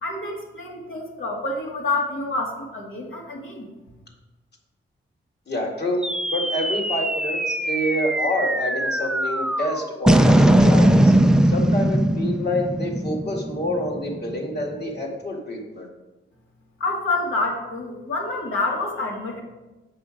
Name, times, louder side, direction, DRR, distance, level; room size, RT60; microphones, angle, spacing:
voice 1, 0.0-3.7 16.8-19.4, left 2 dB, 75° left, -1 dB, 2.1 m, -27 dB
voice 2, 5.5-6.0 6.3-11.1 11.4-15.9, left 1 dB, 55° left, 0 dB, 2.2 m, -27 dB
sound 1, 6.0-14.6, right 1 dB, 5° right, 0.4 m, -20 dB
7.8 x 6.2 x 5.1 m, 1.1 s
wide cardioid pair, 90°, 21 cm